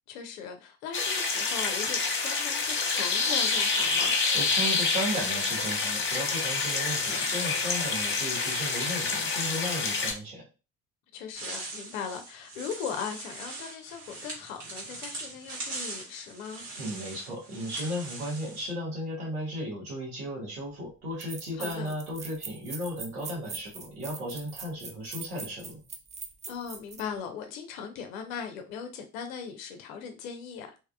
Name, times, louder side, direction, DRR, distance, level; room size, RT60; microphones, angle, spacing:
voice 1, 0.1-4.1 11.1-16.6 21.6-21.9 26.5-30.8, left 7 dB, 70° left, 0.6 m, -39 dB
sound 1, 0.9-10.1, left 4 dB, 25° left, 1.0 m, -27 dB
voice 2, 4.3-10.5 16.8-25.8, equal, 85° right, 1.1 m, -35 dB
sound 2, 11.3-18.7, right 2 dB, 65° right, 1.4 m, -41 dB
sound 3, 20.6-20.7 21.2-27.1, right 5 dB, 20° right, 0.3 m, -42 dB
3.4 x 2.7 x 2.3 m
figure-of-eight pair, 45°, 43 cm